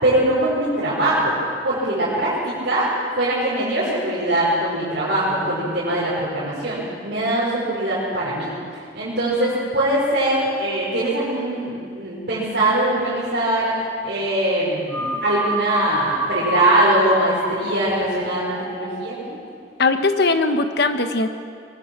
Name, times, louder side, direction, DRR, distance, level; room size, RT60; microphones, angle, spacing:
voice 1, 0.0-1.4 1.6-8.5 8.9-13.7 14.0-19.3, right 1 dB, 65° right, -9 dB, 5.3 m, -22 dB
sound 1, 14.9-19.4, left 1 dB, 35° left, 4.9 m, -27 dB
voice 2, 19.8-21.3, left 3 dB, 60° left, 8 dB, 1.3 m, -19 dB
23.0 x 21.0 x 6.1 m, 2.2 s
head